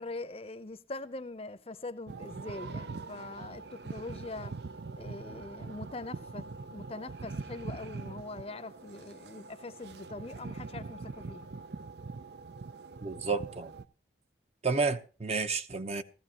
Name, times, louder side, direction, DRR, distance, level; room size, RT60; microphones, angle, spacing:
voice 1, 0.0-4.5 5.0-11.5, left 2 dB, 35° left, 0.7 m, -43 dB
sound 1, 2.1-13.9, right 3 dB, 65° right, 0.6 m, -43 dB
voice 2, 13.0-13.7 14.6-16.0, right 4 dB, 35° right, 0.8 m, -31 dB
16.5 x 15.0 x 2.9 m
head